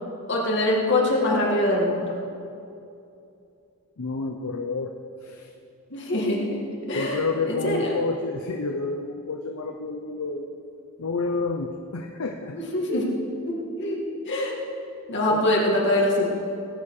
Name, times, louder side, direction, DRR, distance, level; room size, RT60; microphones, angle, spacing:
voice 1, 0.3-2.1 5.9-6.6 6.9-7.2 7.5-7.9 12.5-13.1 13.3-14.6 15.1-16.3, left 1 dB, 55° left, -3 dB, 2.1 m, -24 dB
voice 2, 4.0-4.9 5.2-5.5 6.9-10.5 11.0-12.6 15.3-15.4, left 3 dB, 75° left, 3 dB, 0.8 m, -29 dB
18.5 x 8.8 x 4.9 m, 2.6 s
head